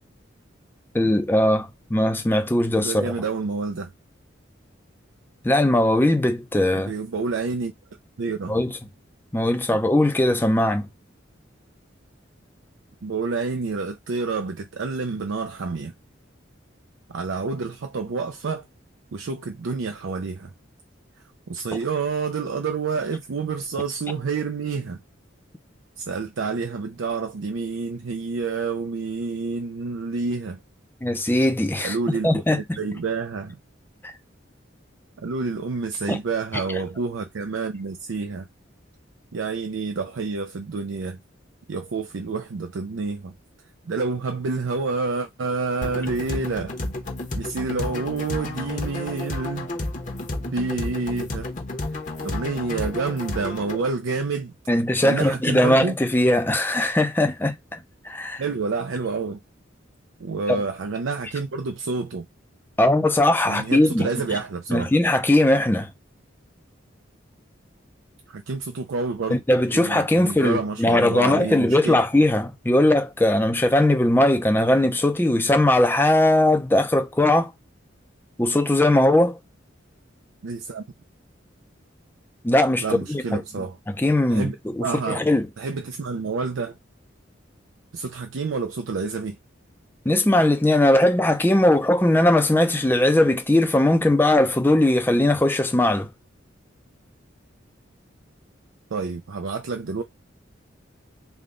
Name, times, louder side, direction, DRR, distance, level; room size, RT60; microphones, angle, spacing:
voice 1, 0.9-3.1 5.4-6.9 8.5-8.7 9.3-10.9 31.0-32.0 32.2-32.8 34.0-34.1 36.1-36.2 54.7-57.8 58.0-58.4 62.8-64.1 64.7-65.9 69.3-77.5 78.4-79.4 82.4-82.8 83.1-83.4 84.0-85.5 90.1-96.1, left 1 dB, 10° left, 0.5 m, -19 dB
voice 2, 2.7-3.9 6.7-7.7 8.2-8.6 9.7-9.8 13.0-15.9 17.1-18.7 19.1-20.5 21.5-25.0 26.0-30.6 31.8-33.6 35.2-38.5 39.3-41.2 41.7-43.4 43.8-46.8 47.3-49.7 50.5-51.5 52.2-54.5 55.0-56.0 58.4-59.4 60.2-62.3 63.4-64.9 68.3-69.4 69.7-72.0 80.4-80.8 82.8-83.8 84.3-85.3 85.6-86.8 87.9-89.4 98.9-100.0, right 4 dB, 85° right, 0.5 m, -28 dB
sound 1, 45.8-53.8, left 2 dB, 40° left, 0.9 m, -31 dB
3.5 x 2.3 x 3.7 m
head